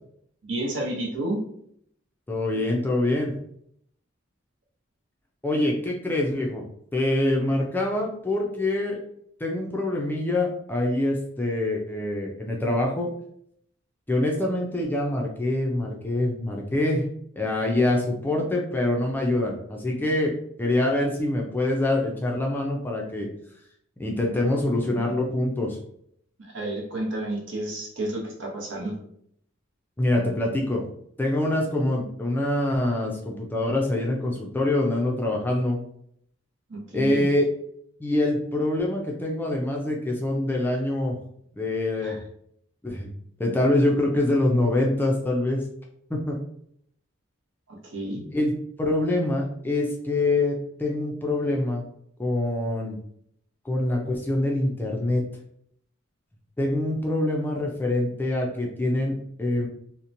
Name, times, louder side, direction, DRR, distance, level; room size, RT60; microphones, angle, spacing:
voice 1, 0.4-1.4 26.4-28.9 36.7-37.2 42.0-42.2 47.7-48.2, right 1 dB, 65° right, -1 dB, 0.8 m, -31 dB
voice 2, 2.3-3.3 5.4-6.6 6.9-9.0 9.4-13.1 14.1-17.1 17.4-20.3 20.6-23.3 24.0-25.8 30.0-30.8 31.2-35.8 36.9-37.5 38.0-41.2 41.5-42.2 42.8-43.1 43.4-45.6 46.1-46.4 48.3-48.5 48.8-51.8 52.2-53.0 53.6-55.2 56.6-59.7, left 1 dB, 10° left, -1 dB, 0.3 m, -25 dB
2.8 x 2.1 x 2.6 m, 0.68 s
head